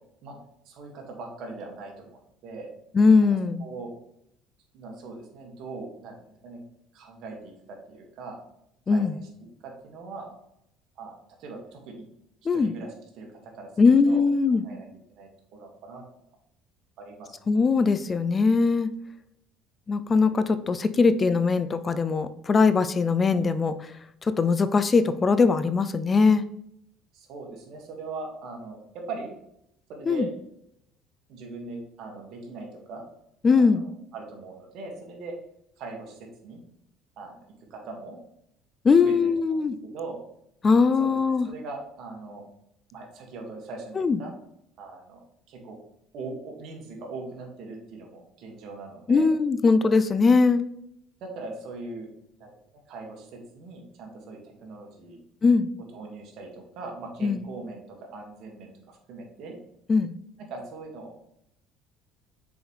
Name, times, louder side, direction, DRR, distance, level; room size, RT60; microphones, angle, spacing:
voice 1, 0.7-2.7 3.6-3.9 4.7-6.6 6.9-8.4 8.9-9.2 9.6-10.3 11.0-11.1 11.4-12.1 12.5-14.2 14.6-16.0 17.0-17.4 27.1-29.3 29.9-30.3 31.3-33.0 33.5-35.3 35.8-36.6 37.2-37.4 37.7-38.2 39.0-40.2 41.0-41.2 41.4-42.4 42.9-44.3 44.8-45.8 46.1-49.3 51.2-52.1 52.4-52.5 52.9-55.2 55.9-59.6 60.5-61.1, right 3 dB, 65° right, 1 dB, 1.9 m, -40 dB
voice 2, 2.9-3.6 8.9-9.1 12.5-12.7 13.8-14.6 17.5-18.9 19.9-23.9 24.2-26.4 30.1-30.3 33.4-33.9 38.8-39.8 40.6-41.5 44.0-44.2 49.1-50.6 55.4-55.7 57.2-57.4 59.9-60.1, left 4 dB, 30° left, 13 dB, 0.4 m, -21 dB
6.3 x 5.0 x 3.3 m, 0.76 s
supercardioid pair, 95°, 0 cm